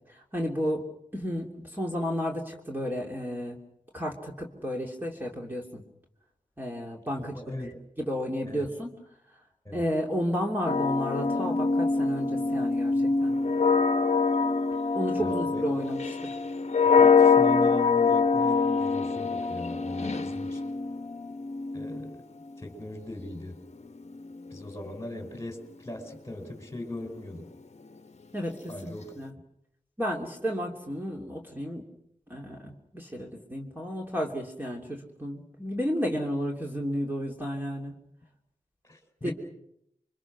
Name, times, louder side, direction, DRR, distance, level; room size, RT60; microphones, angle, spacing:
voice 1, 0.1-0.8 1.1-3.6 3.9-5.8 6.6-7.4 8.0-8.9 9.7-13.3 14.9-16.3 20.0-20.2 28.3-29.3 30.0-31.8 32.3-37.9 39.2-39.3, equal, 15° right, -1 dB, 3.2 m, -32 dB
voice 2, 7.2-7.8 8.4-8.7 9.6-9.8 15.2-15.6 17.0-20.6 21.7-22.2 22.6-23.6 24.5-27.5 28.7-29.1 38.9-39.3, left 1 dB, 20° left, 6 dB, 4.9 m, -39 dB
sound 1, 10.7-22.6 23.6-24.9, left 5 dB, 55° left, 1.0 m, -25 dB
28.5 x 24.0 x 6.2 m, 0.76 s
wide cardioid pair, 120°, 14 cm